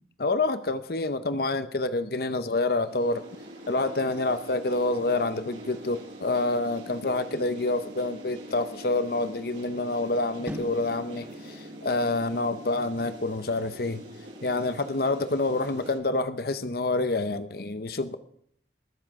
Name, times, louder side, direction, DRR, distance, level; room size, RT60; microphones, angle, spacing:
voice 1, 0.2-3.2 3.7-14.0 14.4-18.2, left 2 dB, 55° left, 11 dB, 0.8 m, -27 dB
sound 1, 2.7-16.0, equal, 90° right, 6.1 m, -44 dB
sound 2, 10.5-16.7, equal, 10° right, 1.9 m, -45 dB
21.0 x 7.6 x 4.7 m, 0.65 s
head